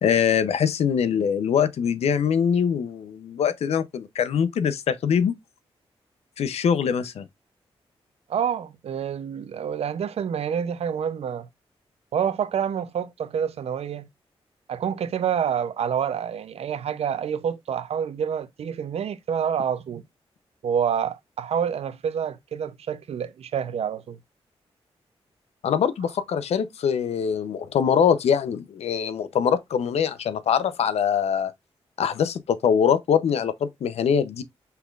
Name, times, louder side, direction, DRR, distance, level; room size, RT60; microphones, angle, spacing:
voice 1, 0.0-5.3 6.4-7.3 25.6-31.5 32.0-34.4, left 7 dB, 80° left, 0.6 m, -23 dB
voice 2, 8.3-11.5 12.1-14.1 14.7-20.0 20.6-24.2, right 8 dB, 75° right, 0.6 m, -27 dB
5.6 x 3.8 x 2.4 m
cardioid pair, 70°, 11 cm